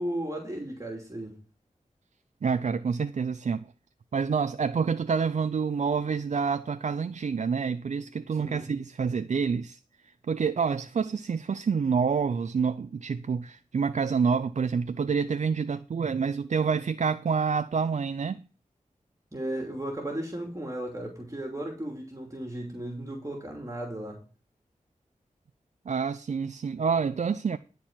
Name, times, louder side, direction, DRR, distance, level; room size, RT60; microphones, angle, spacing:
voice 1, 0.0-1.3 8.4-8.8 19.3-24.2, right 1 dB, 25° right, 2.8 m, -35 dB
voice 2, 2.4-3.7 4.1-18.4 25.9-27.6, right 5 dB, 60° right, 0.4 m, -28 dB
11.5 x 4.6 x 7.4 m
cardioid pair, 50°, 14 cm